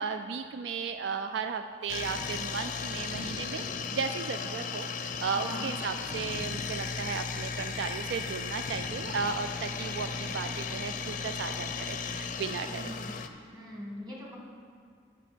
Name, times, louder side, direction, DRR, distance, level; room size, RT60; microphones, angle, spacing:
voice 1, 0.0-12.8, right 5 dB, 70° right, 8 dB, 0.3 m, -35 dB
sound 1, 1.9-13.3, left 5 dB, 45° left, 0.5 m, -36 dB
voice 2, 5.3-5.6 12.7-13.1 13.5-14.4, equal, 20° right, -3 dB, 1.7 m, -41 dB
12.5 x 5.7 x 5.1 m, 2.2 s
head